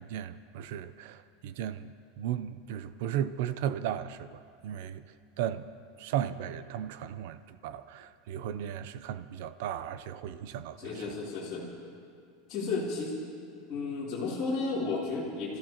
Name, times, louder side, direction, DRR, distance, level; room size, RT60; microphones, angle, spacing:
voice 1, 0.0-5.0 5.4-5.7 6.0-11.1, right 10 dB, 60° right, 0.6 m, -36 dB
voice 2, 10.8-11.7 12.5-13.2 13.7-15.6, left 3 dB, 35° left, 3.0 m, -33 dB
30.0 x 14.5 x 3.0 m
supercardioid pair, 170°, 0 cm